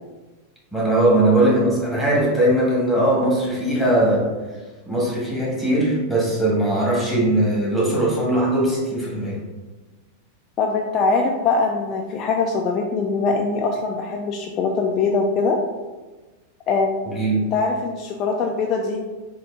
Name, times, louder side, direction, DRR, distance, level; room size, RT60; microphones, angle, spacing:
voice 1, 0.7-4.3 4.9-9.4 17.0-17.5, right 1 dB, ahead, -5 dB, 1.5 m, -20 dB
voice 2, 10.6-15.6 16.7-17.0 17.5-19.0, left 4 dB, 35° left, 1 dB, 0.3 m, -22 dB
4.1 x 2.7 x 3.5 m, 1.2 s
figure-of-eight pair, 90°, 0 cm